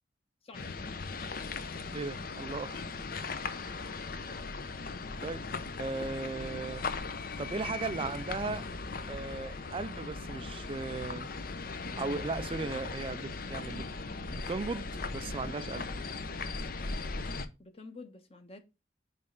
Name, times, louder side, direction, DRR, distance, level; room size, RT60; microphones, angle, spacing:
voice 1, 0.4-0.8 1.7-1.8 3.1-3.4 17.6-18.6, left 3 dB, 35° left, 1.2 m, -50 dB
sound 1, 0.5-17.5, left 4 dB, 55° left, 0.7 m, -38 dB
voice 2, 1.9-2.8 3.6-3.8 5.2-5.5 5.8-6.9 7.4-8.6 9.1-11.3 12.0-13.9 14.3-15.9, right 3 dB, 30° right, 0.3 m, -37 dB
8.8 x 3.3 x 3.9 m
head